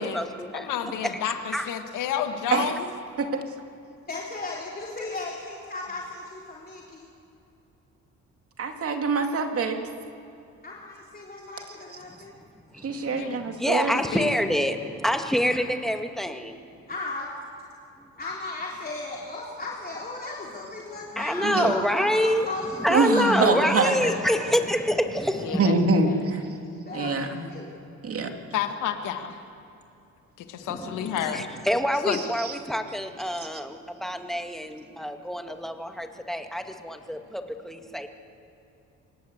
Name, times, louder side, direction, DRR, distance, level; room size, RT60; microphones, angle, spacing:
voice 1, 0.0-0.9 1.5-1.7 12.1-12.2 12.7-16.6 21.2-22.5 22.8-25.7 30.6-38.1, equal, ahead, 5 dB, 2.0 m, -27 dB
voice 2, 0.5-2.8 13.2-13.4 13.8-14.3 25.4-26.2 28.5-29.4 30.4-31.5 32.1-32.2, left 9 dB, 90° left, 7 dB, 1.9 m, -30 dB
voice 3, 4.1-7.1 10.6-12.3 15.4-15.6 16.9-17.3 18.2-24.1 26.1-26.2 26.7-27.7, left 3 dB, 30° left, -4 dB, 3.6 m, -35 dB
voice 4, 8.6-9.8 12.8-14.0 21.4-21.7 22.9-23.9 25.6-26.4 26.9-27.4 28.0-28.3 32.1-32.5, right 3 dB, 50° right, 5 dB, 2.5 m, -24 dB
26.0 x 19.0 x 8.1 m, 2.7 s
cardioid pair, 90°, 30 cm